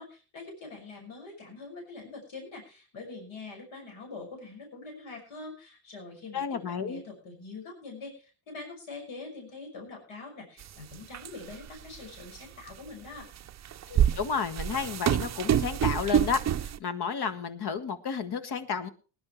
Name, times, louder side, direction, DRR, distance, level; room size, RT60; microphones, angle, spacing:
voice 1, 0.0-13.3, left 3 dB, 70° left, 1 dB, 5.9 m, -44 dB
voice 2, 6.3-7.0 13.9-18.9, left 6 dB, 50° left, 9 dB, 1.7 m, -32 dB
sound 1, 10.6-10.7 11.1-11.7 12.4-12.5 13.5-16.8, right 10 dB, 35° right, 0.6 m, -26 dB
20.0 x 11.0 x 3.1 m, 0.35 s
cardioid pair, 100°, 49 cm